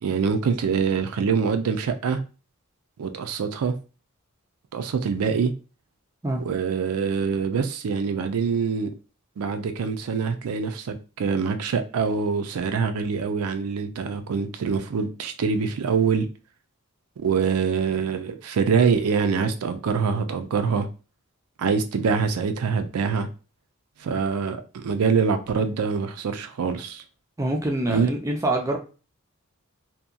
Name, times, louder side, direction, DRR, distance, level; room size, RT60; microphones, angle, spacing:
voice 1, 0.0-2.2 3.0-3.7 4.7-5.5 6.4-8.9 9.4-16.3 17.2-20.9 21.6-23.3 24.0-27.0 27.9-28.1, right 5 dB, 90° right, 0.4 m, -24 dB
voice 2, 27.4-28.8, right 1 dB, 15° right, 0.3 m, -25 dB
2.8 x 2.2 x 2.4 m
head